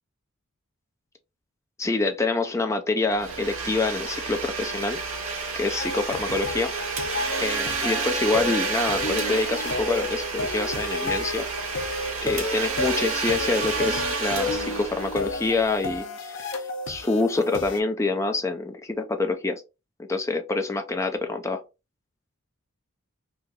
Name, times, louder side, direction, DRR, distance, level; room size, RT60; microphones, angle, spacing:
voice 1, 1.8-5.0 5.6-6.7 7.4-11.4 12.2-19.6 20.1-21.6, left 3 dB, 15° left, 0.4 m, -26 dB
Domestic sounds home sounds, 3.1-15.7, right 4 dB, 85° right, 1.0 m, -30 dB
sound 1, 5.8-17.8, left 3 dB, 70° left, 0.6 m, -32 dB
2.9 x 2.5 x 3.5 m
head